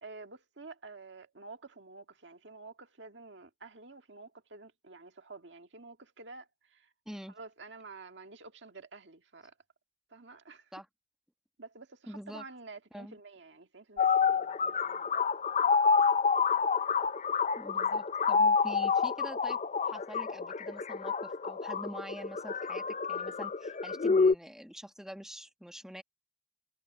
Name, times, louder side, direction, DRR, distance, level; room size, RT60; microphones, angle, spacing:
voice 1, 0.0-6.9 7.3-9.5 10.1-10.7 11.6-15.2, right 3 dB, 65° right, 1.9 m, -50 dB
voice 2, 12.1-12.4 12.9-13.1 17.6-19.6 19.8-26.0, equal, 5° right, 1.2 m, -45 dB
sound 1, 14.0-24.3, left 5 dB, 35° left, 0.5 m, -28 dB
head